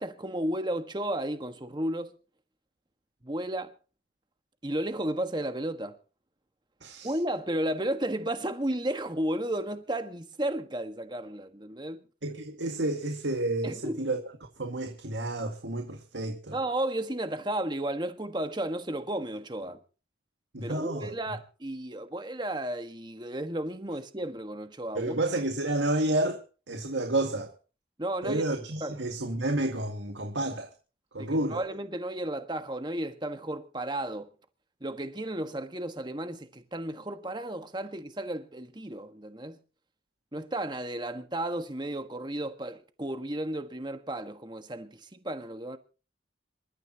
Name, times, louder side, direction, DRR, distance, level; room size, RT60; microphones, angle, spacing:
voice 1, 0.0-2.2 3.2-3.7 4.6-6.0 7.0-12.1 13.6-14.0 16.5-19.8 20.6-25.1 28.0-28.4 28.8-29.0 31.2-34.3 34.8-39.6 40.3-45.8, right 1 dB, 25° right, 1.4 m, -33 dB
voice 2, 6.8-7.1 12.2-14.2 14.6-16.6 20.5-21.1 25.0-27.5 28.2-30.7 31.1-31.6, right 1 dB, 75° right, 2.1 m, -30 dB
27.0 x 13.5 x 2.9 m
head